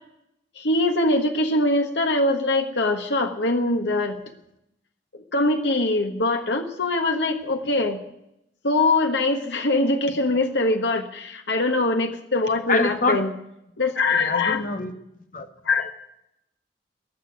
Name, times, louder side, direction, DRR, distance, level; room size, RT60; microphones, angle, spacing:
voice 1, 0.6-4.2 5.1-8.0 8.6-13.3 13.8-14.6 15.6-15.9, left 2 dB, 80° left, 5 dB, 1.4 m, -22 dB
voice 2, 12.7-13.2 14.2-14.9 15.3-15.5, left 3 dB, 45° left, 6 dB, 1.6 m, -25 dB
19.5 x 7.0 x 9.3 m, 0.82 s
head